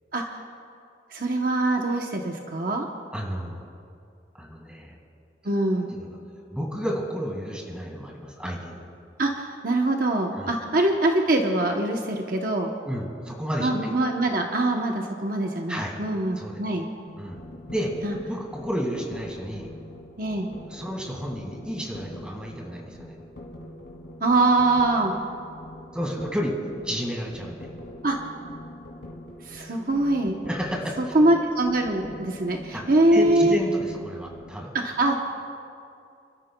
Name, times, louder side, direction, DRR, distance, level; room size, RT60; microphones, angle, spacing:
voice 1, 0.1-0.4 1.1-2.9 5.4-5.9 9.2-12.7 13.6-16.9 18.0-18.2 20.2-20.5 24.2-25.1 28.0-28.2 29.4-30.4 31.1-33.6 34.8-35.1, right 2 dB, 50° right, 2 dB, 0.9 m, -23 dB
voice 2, 3.1-3.6 4.3-5.0 5.8-6.2 6.5-8.8 10.3-10.5 12.9-13.7 15.7-16.0 16.4-16.6 17.2-17.4 17.7-17.9 18.2-19.7 20.7-23.2 25.9-26.6 26.8-27.7 30.5-31.1 32.7-32.8 33.1-34.7, equal, 5° right, -1 dB, 1.9 m, -31 dB
sound 1, 17.1-34.5, left 1 dB, 90° left, 2.6 m, -43 dB
29.5 x 13.0 x 2.3 m, 2.4 s
head